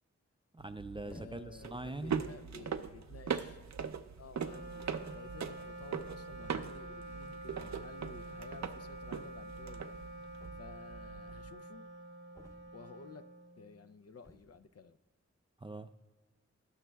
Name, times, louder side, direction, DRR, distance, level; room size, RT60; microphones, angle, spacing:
voice 1, 0.5-2.2 15.6-15.9, right 2 dB, 20° right, 10 dB, 0.4 m, -42 dB
sound 1, 0.6-11.5, right 6 dB, 70° right, 0.5 m, -41 dB
voice 2, 1.0-3.6 4.2-9.9 10.6-11.9 12.7-13.3 13.6-15.0, left 5 dB, 55° left, 10 dB, 0.5 m, -53 dB
sound 2, 1.1-1.7 2.5-2.6 3.4-3.5 3.8-4.1 5.3-5.4 5.6-5.7 5.9-6.0 7.6-8.1 10.4-11.1 12.3-13.0 14.2-14.6, equal, 10° left, 1.0 m, -56 dB
Wind instrument woodwind instrument, 4.3-13.9, right 1 dB, 75° left, 1.2 m, -48 dB
18.0 x 7.1 x 2.3 m, 1.3 s
wide cardioid pair, 85°, 29 cm